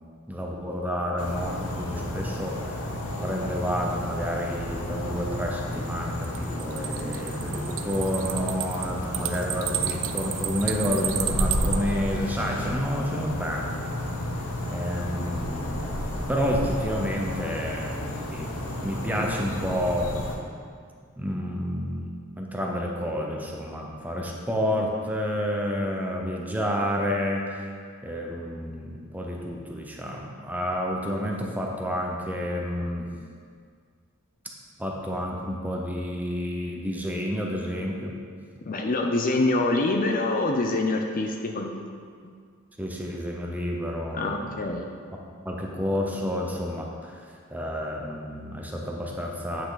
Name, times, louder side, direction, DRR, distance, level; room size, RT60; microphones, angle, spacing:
voice 1, 0.3-2.7 3.2-13.7 14.7-15.8 16.3-20.1 21.2-22.1 22.4-27.7 28.0-33.1 34.8-38.1 42.8-44.7 45.4-47.2 47.5-49.7, equal, 10° right, -1 dB, 0.8 m, -30 dB
sound 1, 1.2-20.4, left 1 dB, 90° left, 1.0 m, -32 dB
sound 2, 6.2-11.8, right 13 dB, 65° right, 0.4 m, -31 dB
voice 2, 38.7-41.8 44.1-44.9, left 2 dB, 40° left, 3 dB, 0.5 m, -25 dB
8.8 x 5.7 x 4.0 m, 2.1 s
head